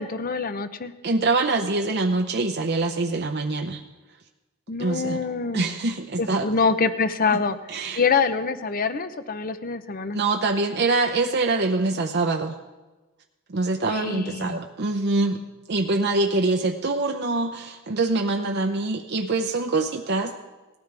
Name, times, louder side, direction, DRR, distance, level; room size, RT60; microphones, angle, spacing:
voice 1, 0.0-0.9 4.7-5.7 6.2-7.6 8.0-10.2 14.0-14.6, left 4 dB, 40° left, 11 dB, 0.7 m, -25 dB
voice 2, 1.0-3.8 4.8-5.2 5.5-6.5 7.3-7.4 7.7-8.0 10.1-12.5 13.5-15.4 15.7-20.3, right 3 dB, 50° right, 3 dB, 0.7 m, -24 dB
19.0 x 13.0 x 3.4 m, 1.2 s
head